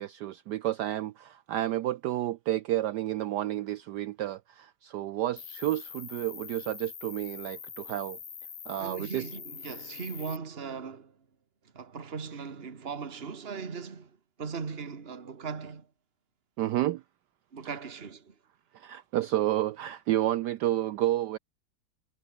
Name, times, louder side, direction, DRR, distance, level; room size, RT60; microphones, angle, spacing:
voice 1, 0.0-8.2 8.7-9.3 16.6-17.0 18.7-21.4, right 13 dB, 75° right, 1.0 m, -30 dB
Cricket, 5.4-10.4, left 7 dB, 45° left, 1.7 m, -44 dB
voice 2, 8.8-11.2 11.7-15.9 17.5-18.4, right 5 dB, 30° right, 1.9 m, -39 dB
omnidirectional pair, 2.2 m